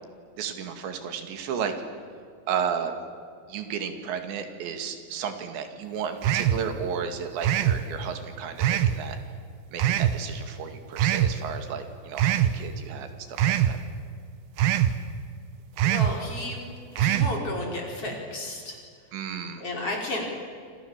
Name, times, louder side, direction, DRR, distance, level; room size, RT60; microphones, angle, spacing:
voice 1, 0.4-1.7 2.5-2.9 3.5-9.2 9.7-13.1 13.5-13.8 19.1-19.6, right 7 dB, 85° right, 7 dB, 4.4 m, -33 dB
sound 1, 6.2-6.6 7.4-7.8 8.6-9.0 9.8-10.2 11.0-11.3 12.2-12.5 13.4-13.7 14.6-14.9 15.8-16.1 17.0-17.3, right 11 dB, 70° right, 2.7 m, -22 dB
voice 2, 15.8-16.6 17.0-18.8 19.6-20.3, left 2 dB, 35° left, 0 dB, 5.6 m, -32 dB
28.0 x 27.0 x 7.3 m, 2.2 s
omnidirectional pair, 5.0 m